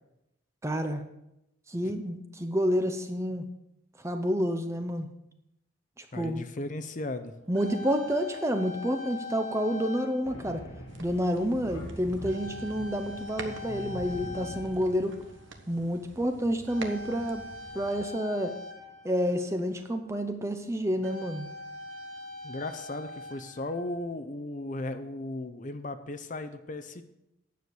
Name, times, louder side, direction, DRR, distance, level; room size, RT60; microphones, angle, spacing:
voice 1, 0.6-1.0 1.7-3.5 4.0-5.1 6.0-6.5 7.5-10.6 11.0-15.2 15.7-17.4 17.7-18.5 19.0-21.5, equal, 15° right, 7 dB, 0.7 m, -29 dB
voice 2, 6.1-7.3 22.4-27.0, left 2 dB, 40° left, 9 dB, 0.6 m, -36 dB
sound 1, 7.3-10.9 11.6-11.8 12.3-15.6 16.7-19.7 20.4-20.5 20.9-23.9, left 3 dB, 85° right, 2.1 m, -43 dB
Thunder, 10.2-15.3, equal, 75° left, 1.9 m, -43 dB
sound 2, 10.9-18.1, right 3 dB, 65° right, 1.1 m, -48 dB
9.4 x 7.1 x 6.3 m, 0.86 s
head